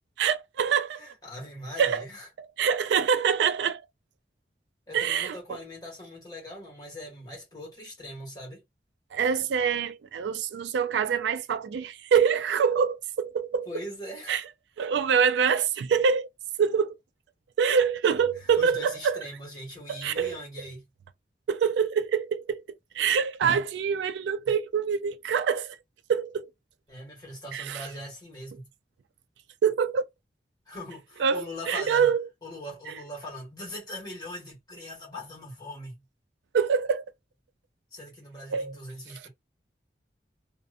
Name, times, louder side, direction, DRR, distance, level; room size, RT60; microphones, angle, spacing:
voice 1, 0.2-1.0 1.8-2.0 2.6-3.8 4.9-5.6 9.1-13.7 14.3-14.4 14.8-16.3 16.6-17.0 17.6-19.2 19.9-20.4 21.5-22.6 22.9-25.8 26.1-26.5 27.5-27.9 29.6-30.0 31.2-32.2 32.9-33.0 36.5-37.0 38.5-38.8, right 7 dB, 80° right, 0.3 m, -25 dB
voice 2, 1.0-2.3 4.9-8.6 13.7-14.4 18.6-20.8 26.9-28.7 30.7-32.1 32.4-36.0 37.9-39.3, left 1 dB, 20° left, 1.3 m, -41 dB
2.6 x 2.1 x 2.4 m
head